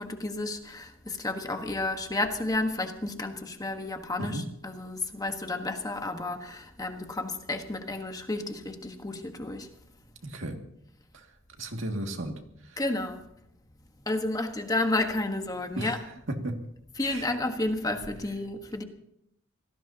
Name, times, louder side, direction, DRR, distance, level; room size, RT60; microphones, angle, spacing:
voice 1, 0.0-9.7 12.8-13.2 14.1-16.0 17.0-18.8, left 2 dB, 20° left, 1.4 m, -31 dB
voice 2, 10.2-10.6 11.6-12.4 15.8-15.9 16.3-16.6 17.0-17.4, right 1 dB, 70° right, 2.3 m, -34 dB
27.0 x 18.5 x 2.9 m
head